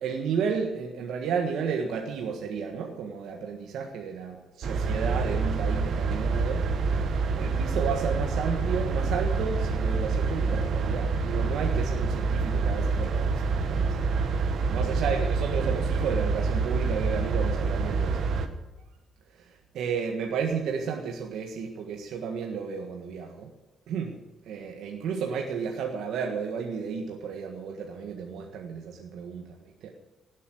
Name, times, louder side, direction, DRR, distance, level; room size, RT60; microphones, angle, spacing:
voice 1, 0.0-7.0 7.4-14.0 14.7-18.2 19.4-19.5 19.7-23.5 23.9-24.2 24.5-29.4 29.8-29.9, right 6 dB, 80° right, 2 dB, 1.6 m, -32 dB
sound 1, 4.6-18.5, right 4 dB, 50° right, 1.4 m, -27 dB
18.0 x 8.4 x 9.3 m, 1.1 s
cardioid pair, 180°, 0 cm